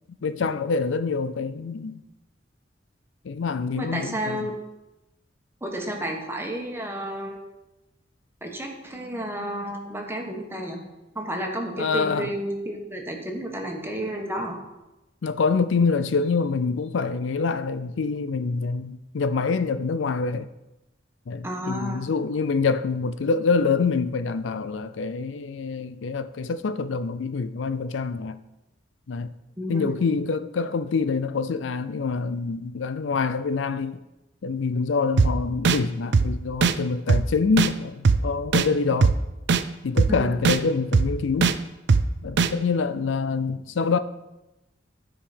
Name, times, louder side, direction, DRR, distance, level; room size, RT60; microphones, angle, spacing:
voice 1, 0.2-2.0 3.2-4.5 11.8-12.3 15.2-20.5 21.3-28.4 29.1-29.3 29.7-34.0 34.4-39.1 39.8-41.5 42.2-44.0, left 4 dB, 80° left, 0.5 m, -26 dB
voice 2, 3.8-4.5 5.6-7.4 8.4-10.8 11.1-14.5 21.4-22.0 29.6-30.0 40.1-40.3, right 1 dB, 15° right, 1.4 m, -31 dB
sound 1, 35.2-35.3 35.7-35.8 36.1-36.3 36.6-36.7 37.1-37.2 37.6-37.7 38.1-38.2 38.5-38.7 39.0-39.1 39.5-39.6 40.0-40.1 40.4-40.6 40.9-41.1 41.4-41.5 41.9-42.0 42.4-42.5, right 4 dB, 65° right, 0.5 m, -18 dB
13.0 x 5.0 x 5.1 m
head